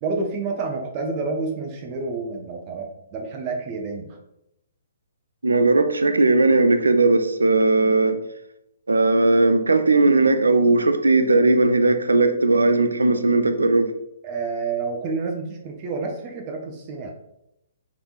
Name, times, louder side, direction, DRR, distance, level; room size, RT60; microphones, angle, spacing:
voice 1, 0.0-4.2 14.2-17.1, right 4 dB, 30° right, 2 dB, 0.6 m, -29 dB
voice 2, 5.4-8.2 8.9-13.9, right 2 dB, 70° right, 9 dB, 0.3 m, -18 dB
3.3 x 3.0 x 2.4 m, 0.81 s
figure-of-eight pair, 125°, 0 cm